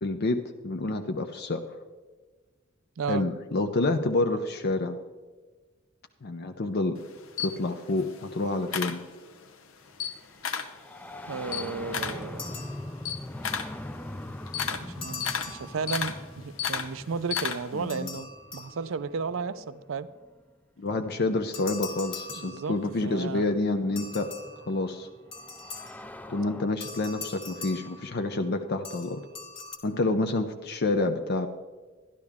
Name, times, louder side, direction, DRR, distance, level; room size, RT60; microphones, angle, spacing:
voice 1, 0.0-1.8 3.1-5.0 6.2-7.0 7.4-9.0 17.7-18.1 20.8-24.3 24.7-25.1 26.3-29.2 29.8-31.5, left 2 dB, 50° left, 6 dB, 0.6 m, -28 dB
voice 2, 3.0-3.3 11.3-12.7 14.6-20.1 22.4-23.5, right 5 dB, 70° right, 15 dB, 0.5 m, -34 dB
Camera, 7.0-9.5 9.9-10.8 11.2-17.9, left 7 dB, 80° left, 0.8 m, -33 dB
sound 1, 9.9-20.5 21.8-21.9 22.9-26.7, left 1 dB, 10° left, 0.4 m, -43 dB
sound 2, 12.4-13.3 15.0-16.3 17.9-19.3 21.5-23.2 24.0-26.2 26.8-28.5 28.8-29.8, left 4 dB, 25° left, 1.5 m, -42 dB
11.5 x 11.5 x 3.6 m, 1.3 s
head